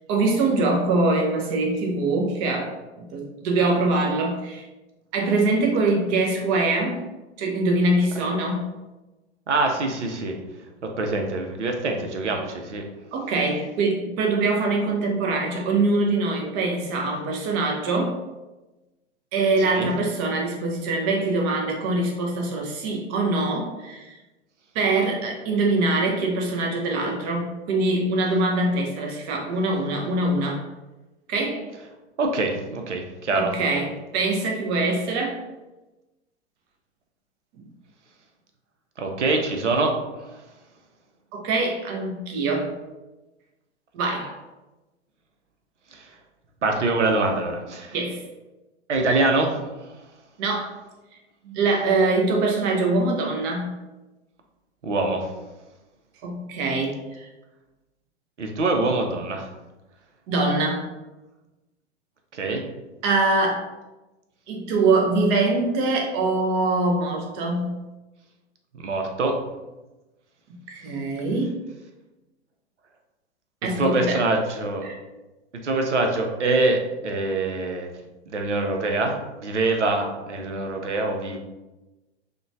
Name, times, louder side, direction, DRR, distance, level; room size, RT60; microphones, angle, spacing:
voice 1, 0.1-4.7 5.1-7.0 7.4-8.7 13.1-18.2 19.3-24.1 24.7-30.6 31.3-31.7 33.4-35.4 41.3-42.7 43.9-44.4 47.9-48.2 50.4-50.7 51.4-53.7 56.2-57.3 60.3-60.8 63.0-63.7 64.5-67.8 70.7-71.6 73.6-74.2 74.8-74.9, right 2 dB, 20° right, 1 dB, 0.3 m, -23 dB
voice 2, 9.5-10.4 11.0-12.8 19.7-19.9 32.2-33.5 39.0-39.9 40.2-40.4 45.9-46.1 46.6-48.0 48.9-49.9 54.8-55.3 58.4-59.5 62.3-62.6 68.8-69.3 73.6-74.9 75.6-77.9 78.3-81.4, right 2 dB, 85° right, 3 dB, 0.6 m, -24 dB
2.8 x 2.1 x 2.5 m, 1.1 s
figure-of-eight pair, 110°, 34 cm